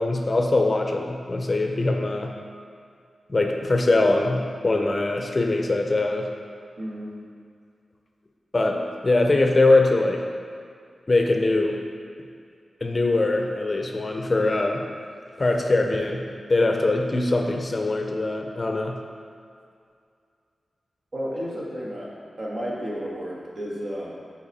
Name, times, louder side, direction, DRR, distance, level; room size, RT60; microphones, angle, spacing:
voice 1, 0.0-2.3 3.3-6.3 8.5-10.2 11.1-11.8 12.8-14.9 15.4-19.0, left 2 dB, 35° left, 3 dB, 0.6 m, -22 dB
voice 2, 6.8-7.2 21.1-22.1 22.4-24.1, equal, 55° right, -5 dB, 1.6 m, -32 dB
9.0 x 4.1 x 4.1 m, 2.3 s
wide cardioid pair, 105°, 0 cm